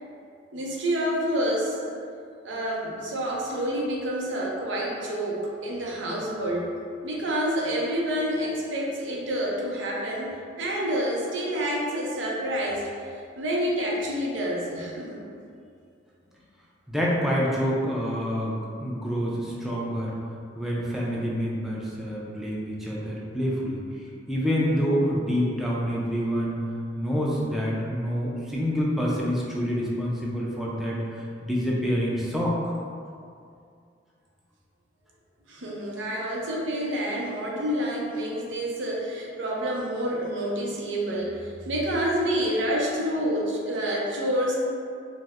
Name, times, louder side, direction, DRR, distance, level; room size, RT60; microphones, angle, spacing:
voice 1, 0.5-2.0 2.4-6.7 7.0-12.9 13.4-15.2 35.5-44.5, equal, 75° right, -3 dB, 0.6 m, -28 dB
voice 2, 16.9-20.1 20.6-23.8 24.3-26.6 27.0-32.6, equal, ahead, -6 dB, 0.4 m, -27 dB
4.3 x 2.1 x 2.5 m, 2.4 s
head